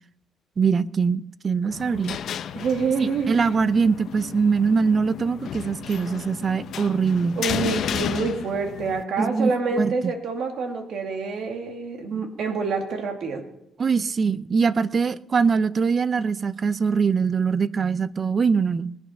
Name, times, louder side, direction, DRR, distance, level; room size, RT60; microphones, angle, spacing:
voice 1, 0.6-2.2 3.0-7.4 9.2-10.1 12.1-12.2 13.8-19.0, right 5 dB, 40° right, 17 dB, 0.6 m, -23 dB
sound 1, 1.7-9.0, left 9 dB, 70° left, 0.7 m, -33 dB
voice 2, 2.5-3.4 7.4-13.4, right 4 dB, 70° right, 4 dB, 2.3 m, -27 dB
20.5 x 8.6 x 5.6 m, 0.81 s
cardioid pair, 90°, 0 cm